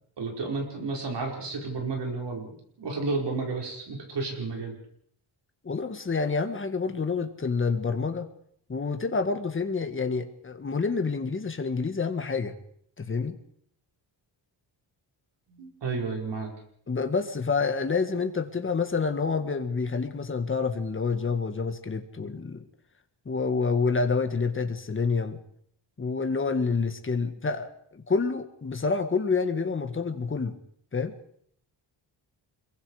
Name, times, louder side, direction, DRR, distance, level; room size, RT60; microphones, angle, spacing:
voice 1, 0.2-4.7 15.5-16.5, right 3 dB, 60° right, 1 dB, 5.4 m, -32 dB
voice 2, 5.6-8.3 8.7-12.6 13.0-13.4 16.9-22.7 23.3-25.4 26.0-30.6 30.9-31.1, left 4 dB, 25° left, 7 dB, 1.7 m, -28 dB
26.0 x 22.5 x 5.0 m, 0.65 s
wide cardioid pair, 165°, 47 cm